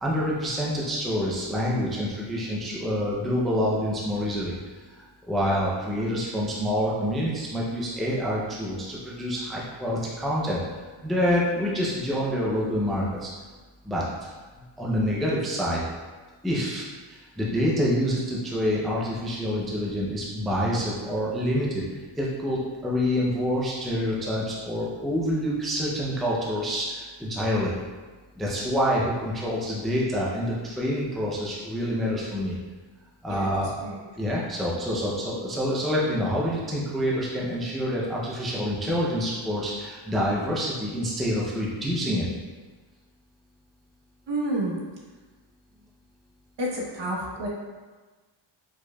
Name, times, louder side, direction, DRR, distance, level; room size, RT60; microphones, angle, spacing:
voice 1, 0.0-4.6 4.9-10.6 11.0-13.3 13.8-14.3 14.8-15.8 16.4-21.8 22.2-27.7 28.4-32.6 33.2-33.7 34.2-42.3, equal, ahead, -5 dB, 0.5 m, -27 dB
voice 2, 44.3-44.7 46.6-47.5, right 1 dB, 60° right, -2 dB, 1.1 m, -29 dB
4.8 x 4.4 x 2.3 m, 1.3 s
wide cardioid pair, 155°, 49 cm